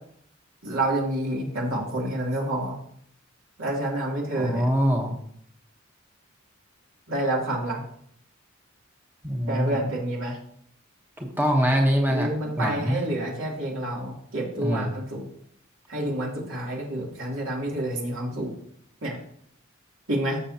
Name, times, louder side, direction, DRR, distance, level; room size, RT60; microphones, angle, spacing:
voice 1, 0.6-2.8 3.6-4.6 7.1-7.8 9.5-10.4 12.1-15.2 15.9-18.5 19.0-19.2 20.1-20.4, right 1 dB, 70° right, -3 dB, 3.1 m, -28 dB
voice 2, 4.4-5.2 9.2-9.8 11.2-12.3 12.6-13.0 14.6-14.9, equal, 10° right, 0 dB, 1.2 m, -23 dB
14.5 x 7.0 x 2.9 m, 0.67 s
head